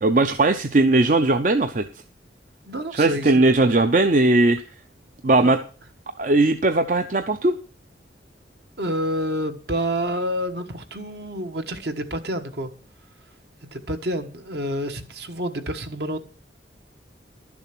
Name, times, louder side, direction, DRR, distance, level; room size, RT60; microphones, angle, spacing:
voice 1, 0.0-1.8 3.0-4.6 5.2-5.6 6.2-7.5, right 2 dB, 45° right, 0.5 m, -18 dB
voice 2, 2.6-3.6 5.4-5.6 8.8-12.7 13.6-16.2, equal, 65° right, 1.4 m, -28 dB
11.5 x 7.0 x 6.0 m
head